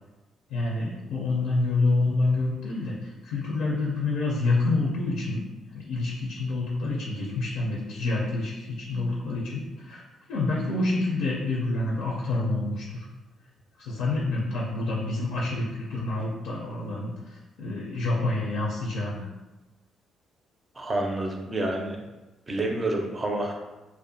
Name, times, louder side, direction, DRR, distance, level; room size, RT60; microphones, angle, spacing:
voice 1, 0.5-5.4 5.7-10.0 10.3-13.1 13.8-19.3, left 2 dB, 90° left, -3 dB, 0.4 m, -27 dB
voice 2, 20.8-22.0 22.5-23.5, right 2 dB, 30° right, 2 dB, 0.4 m, -28 dB
2.5 x 2.1 x 2.6 m, 1.1 s
cardioid pair, 85°, 0 cm